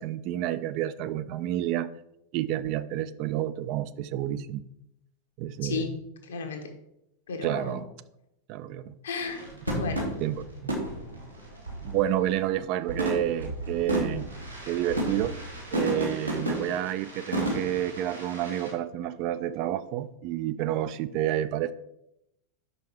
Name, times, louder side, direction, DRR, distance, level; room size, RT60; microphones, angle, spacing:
voice 1, 0.0-1.9 2.3-4.6 5.4-5.9 7.4-7.8 8.5-9.0 10.2-10.8 11.8-14.3 14.7-15.3 15.7-21.7, right 12 dB, 40° right, 14 dB, 0.3 m, -29 dB
voice 2, 5.6-6.0 6.3-6.7 7.3-7.8 9.0-9.4 9.8-10.1, left 4 dB, 65° left, 4 dB, 1.1 m, -33 dB
sound 1, 9.2-12.5 12.9-18.7, right 1 dB, 90° right, 1.4 m, -33 dB
5.4 x 5.4 x 4.4 m, 0.82 s
figure-of-eight pair, 90°, 0 cm